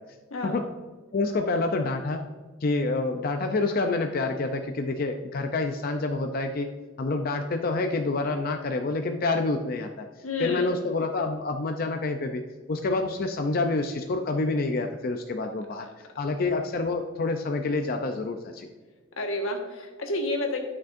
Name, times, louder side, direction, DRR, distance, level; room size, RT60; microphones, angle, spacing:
voice 1, 1.1-2.2 2.6-6.7 7.0-10.1 10.4-12.4 12.7-15.9 16.2-18.7, left 3 dB, 45° left, 5 dB, 0.5 m, -27 dB
voice 2, 10.2-10.7 15.8-15.9 19.2-20.6, left 2 dB, 90° left, 2 dB, 1.4 m, -30 dB
11.5 x 6.0 x 2.5 m, 1.3 s
head